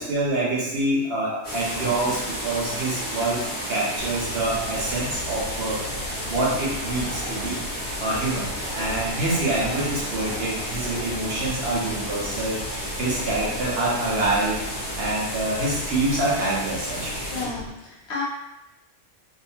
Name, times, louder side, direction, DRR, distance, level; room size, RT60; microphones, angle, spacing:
voice 1, 0.0-7.6 8.0-14.6 15.0-17.1, right 2 dB, 60° right, -5 dB, 0.8 m, -26 dB
sound 1, 1.4-17.5, equal, 10° left, 0.7 m, -32 dB
sound 2, 2.0-4.5 5.4-7.7 8.2-13.7, right 1 dB, 85° right, 1.1 m, -44 dB
sound 3, 4.0-17.7, left 2 dB, 85° left, 1.0 m, -38 dB
voice 2, 8.0-8.3 13.1-13.6 17.3-18.2, left 4 dB, 60° left, -4 dB, 0.9 m, -34 dB
2.6 x 2.4 x 2.7 m, 0.92 s
omnidirectional pair, 1.3 m